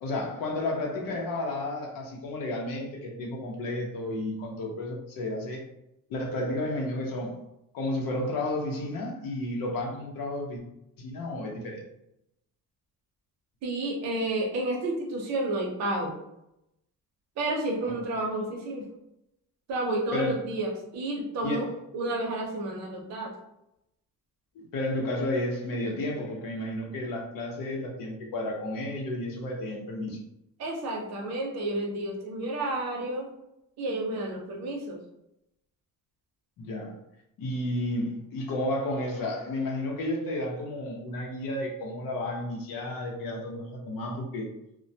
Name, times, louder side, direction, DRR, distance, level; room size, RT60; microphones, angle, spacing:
voice 1, 0.0-5.6 6.1-7.4 7.7-10.6 11.0-11.8 20.1-20.4 21.4-21.7 24.5-30.2 36.6-37.0 37.4-44.5, left 1 dB, 70° left, 0 dB, 0.7 m, -32 dB
voice 2, 13.6-16.2 17.4-18.9 19.7-21.7 21.9-23.3 30.6-33.3 33.8-35.0, right 2 dB, 50° right, -1 dB, 0.6 m, -31 dB
2.2 x 2.1 x 2.6 m, 0.83 s
cardioid pair, 170°, 35 cm